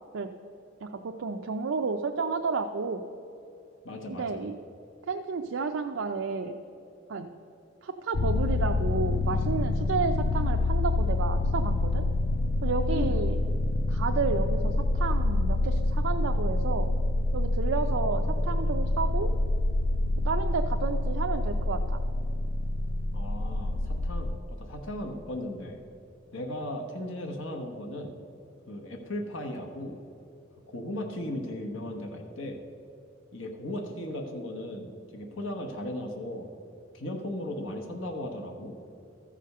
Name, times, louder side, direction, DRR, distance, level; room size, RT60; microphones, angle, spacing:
voice 1, 0.8-3.0 4.1-4.6 5.1-6.6 7.1-7.3 7.8-12.1 12.6-13.4 13.9-16.9 17.3-19.3 20.2-22.0, right 4 dB, 75° right, 4 dB, 0.5 m, -31 dB
voice 2, 3.8-4.4 12.9-13.2 23.1-25.8 26.3-28.1 28.7-30.0 30.7-32.6 33.3-36.5 36.9-38.7, left 1 dB, 75° left, 2 dB, 1.1 m, -36 dB
sound 1, 8.1-24.4, left 2 dB, 55° left, 0.5 m, -27 dB
13.0 x 5.1 x 6.6 m, 2.9 s
head